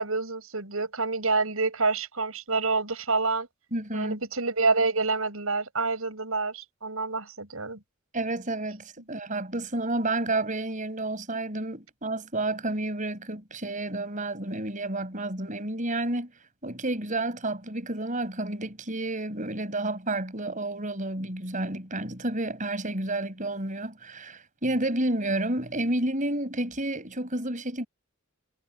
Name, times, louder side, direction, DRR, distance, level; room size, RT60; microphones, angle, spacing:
voice 1, 0.0-3.5 3.9-7.8, right 3 dB, 80° right, 6.2 m, -27 dB
voice 2, 3.7-4.2 8.1-16.3 16.6-27.9, right 2 dB, 35° right, 5.7 m, -30 dB
head